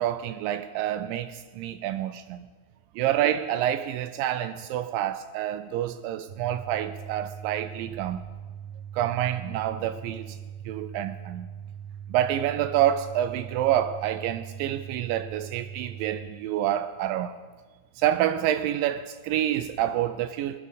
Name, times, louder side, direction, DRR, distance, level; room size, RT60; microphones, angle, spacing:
voice 1, 0.0-2.5 3.0-8.3 8.9-10.4 10.7-11.5 12.1-17.4 18.0-20.6, right 11 dB, 90° right, 1.9 m, -27 dB
sound 1, 6.3-16.3, right 9 dB, 50° right, 1.2 m, -41 dB
26.0 x 11.0 x 4.1 m
omnidirectional pair, 4.5 m